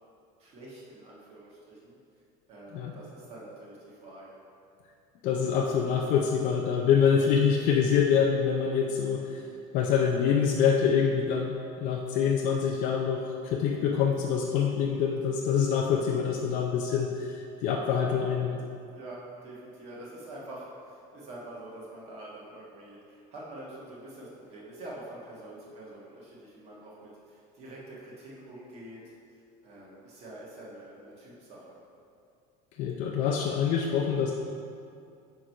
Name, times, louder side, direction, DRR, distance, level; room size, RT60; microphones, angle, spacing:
voice 1, 0.4-2.0 2.5-4.4 18.9-29.0 29.6-31.8, right 1 dB, 35° right, -6 dB, 1.5 m, -46 dB
voice 2, 5.2-9.4 9.7-18.6 32.8-34.3, left 7 dB, 45° left, 0 dB, 0.5 m, -25 dB
6.3 x 4.6 x 5.3 m, 2.5 s
cardioid pair, 170°, 17 cm